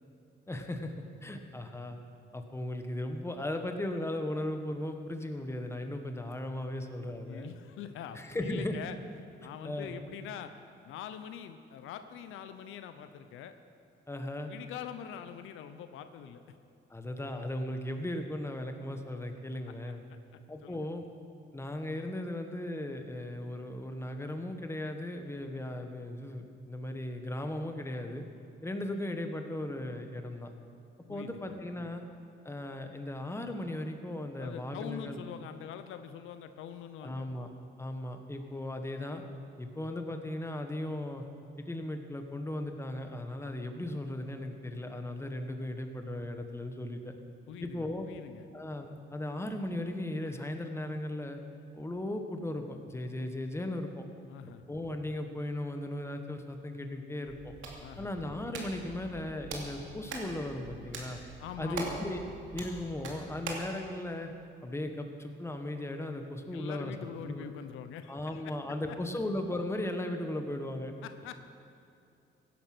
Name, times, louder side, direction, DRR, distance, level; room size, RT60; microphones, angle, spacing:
voice 1, 0.5-2.0 2.3-7.5 8.1-8.8 9.6-10.0 14.1-14.5 16.9-20.0 20.5-21.1 21.5-28.2 28.6-30.5 31.1-32.0 32.4-35.2 37.0-37.5 37.8-39.2 39.6-41.2 41.7-47.1 47.6-48.1 48.5-51.4 51.7-54.1 54.7-57.5 58.0-61.2 61.6-62.2 62.5-64.3 64.6-66.9 67.2-67.5 68.1-70.9, left 1 dB, 15° left, 5 dB, 1.5 m, -37 dB
voice 2, 7.3-9.0 9.4-10.5 10.8-13.5 14.5-16.6 20.1-20.2 20.6-20.9 31.1-31.9 34.4-37.3 47.5-48.5 54.3-54.6 57.8-58.1 61.4-62.0 66.5-68.5 68.9-69.0 71.0-71.4, left 9 dB, 90° left, 9 dB, 0.8 m, -44 dB
Hands, 57.3-63.7, right 4 dB, 75° right, 2.7 m, -43 dB
16.5 x 11.0 x 6.2 m, 2.6 s
cardioid pair, 90°, 20 cm